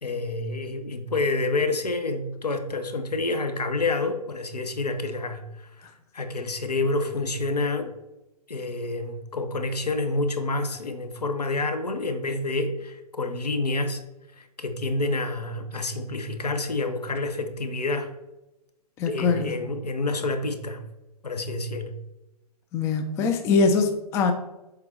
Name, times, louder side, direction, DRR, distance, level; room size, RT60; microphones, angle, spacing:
voice 1, 0.0-7.9 8.5-14.0 14.3-18.1 19.1-20.8 21.2-21.9, left 2 dB, 75° left, 7 dB, 1.0 m, -28 dB
voice 2, 19.0-19.5 22.7-24.3, left 4 dB, 15° left, 6 dB, 0.4 m, -23 dB
7.5 x 3.9 x 4.2 m, 0.95 s
figure-of-eight pair, 120°, 20 cm